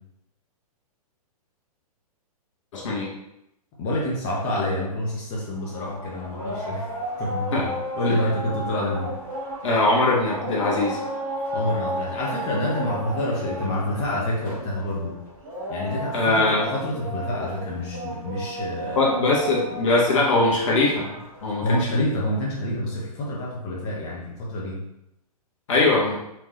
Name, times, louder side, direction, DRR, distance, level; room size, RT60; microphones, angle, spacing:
voice 1, 2.7-3.1 7.5-7.7 8.0-8.2 9.6-11.0 16.1-16.7 18.9-21.8 25.7-26.2, left 2 dB, 55° left, -3 dB, 1.4 m, -21 dB
voice 2, 3.8-6.8 7.2-9.1 11.5-15.1 15.7-16.3 16.7-19.1 21.6-24.8, left 1 dB, 30° left, -5 dB, 1.3 m, -27 dB
sound 1, 5.6-22.0, equal, 20° right, 1.8 m, -34 dB
4.5 x 3.5 x 3.3 m, 0.83 s
figure-of-eight pair, 110°, 20 cm